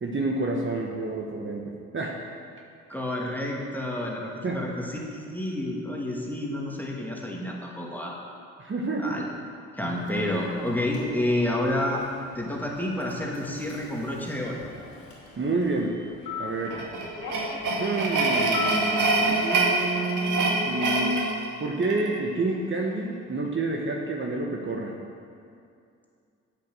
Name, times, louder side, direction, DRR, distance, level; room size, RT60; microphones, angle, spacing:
voice 1, 0.0-2.1 4.4-4.6 8.6-9.1 15.4-15.9 16.4-16.8 17.8-21.3 21.6-24.9, right 2 dB, 35° right, -1 dB, 1.5 m, -29 dB
voice 2, 2.9-8.2 9.0-9.3 9.8-12.0 12.3-14.6, left 1 dB, 5° left, -2 dB, 2.3 m, -29 dB
Human voice / Subway metro underground, 9.8-19.2, left 4 dB, 75° left, 2.7 m, -40 dB
sound 1, 16.7-22.2, right 2 dB, 55° right, 1.8 m, -25 dB
8.5 x 8.4 x 6.3 m, 2.4 s
hypercardioid pair, 50°, 35 cm